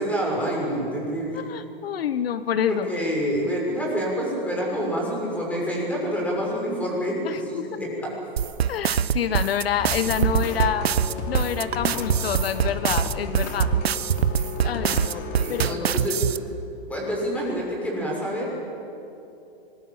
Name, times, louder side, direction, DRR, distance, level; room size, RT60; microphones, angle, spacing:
voice 1, 0.0-1.4 2.7-8.1 15.4-16.2 16.9-18.6, equal, 5° left, -2 dB, 6.3 m, -27 dB
voice 2, 1.3-2.9 7.2-7.7 8.7-10.9 11.3-13.7 14.6-15.2 15.5-15.9, left 9 dB, 75° left, 12 dB, 1.2 m, -27 dB
sound 1, 8.4-16.4, right 9 dB, 80° right, 1.0 m, -23 dB
sound 2, 9.8-15.6, left 4 dB, 45° left, 3.0 m, -33 dB
25.5 x 21.0 x 8.8 m, 2.8 s
hypercardioid pair, 150°, 30 cm